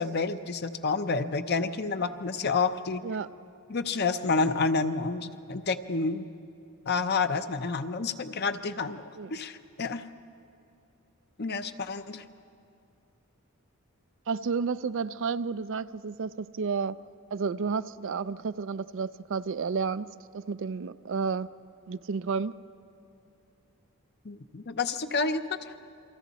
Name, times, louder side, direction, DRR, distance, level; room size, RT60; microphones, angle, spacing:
voice 1, 0.0-3.0 3.7-6.3 6.9-9.0 9.3-10.0 11.4-12.3 24.2-25.7, left 4 dB, 45° left, 9 dB, 0.7 m, -29 dB
voice 2, 14.3-17.0 17.3-21.5 21.9-22.5, right 5 dB, 60° right, 14 dB, 0.4 m, -31 dB
29.5 x 24.0 x 4.1 m, 2.6 s
head